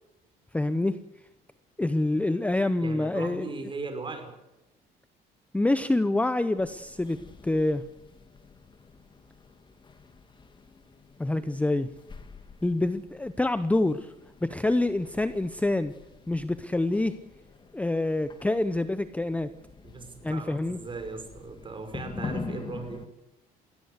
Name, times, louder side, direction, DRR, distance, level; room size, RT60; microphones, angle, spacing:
voice 1, 0.5-1.0 1.8-3.5 5.5-7.8 11.2-11.9 12.6-14.1 14.4-15.9 16.3-17.2 17.7-19.5 20.2-20.8, left 2 dB, 10° left, 13 dB, 0.7 m, -26 dB
voice 2, 2.8-4.3 19.8-23.0, right 3 dB, 30° right, 6 dB, 5.6 m, -38 dB
sound 1, 6.6-23.1, left 4 dB, 30° left, 2.1 m, -45 dB
21.0 x 17.0 x 8.2 m, 0.95 s
cardioid pair, 110°, 17 cm